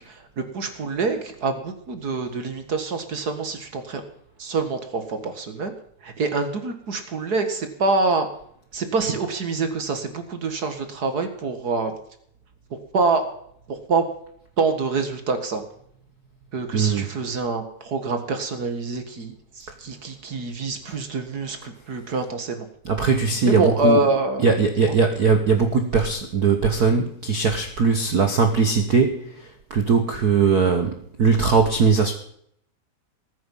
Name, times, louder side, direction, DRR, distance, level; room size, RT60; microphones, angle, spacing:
voice 1, 0.0-4.0 4.4-5.7 6.0-8.3 8.7-12.0 12.7-13.3 13.7-14.1 14.6-15.6 16.5-22.7 23.4-24.5 24.9-25.0, right 3 dB, 40° right, 8 dB, 1.6 m, -26 dB
voice 2, 16.7-17.1 22.8-24.0 24.4-32.1, right 5 dB, 90° right, 6 dB, 0.8 m, -20 dB
20.0 x 9.4 x 5.5 m, 0.67 s
omnidirectional pair, 3.7 m